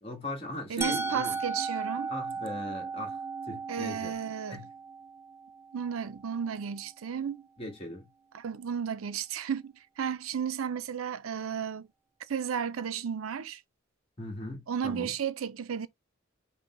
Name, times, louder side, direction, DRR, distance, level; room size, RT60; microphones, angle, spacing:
voice 1, 0.0-1.4 2.1-3.2 3.5-4.1 4.5-4.7 7.6-8.0 14.2-15.1, left 1 dB, 30° left, 1.8 m, -39 dB
voice 2, 0.7-2.1 3.7-4.7 5.7-7.4 8.3-11.9 12.3-13.6 14.7-15.9, right 7 dB, 85° right, 0.5 m, -33 dB
Musical instrument, 0.8-6.7, right 4 dB, 15° right, 0.4 m, -36 dB
5.3 x 2.2 x 3.6 m
head